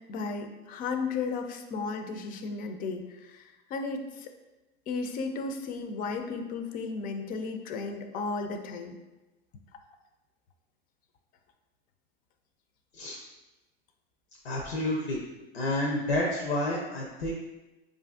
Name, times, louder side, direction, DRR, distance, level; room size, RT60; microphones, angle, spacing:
voice 1, 0.1-4.3 4.9-9.0, left 4 dB, 30° left, 6 dB, 0.4 m, -34 dB
voice 2, 14.4-15.2 15.5-17.3, left 1 dB, 85° left, -1 dB, 0.6 m, -29 dB
4.9 x 2.5 x 2.4 m, 1.1 s
hypercardioid pair, 100°, 31 cm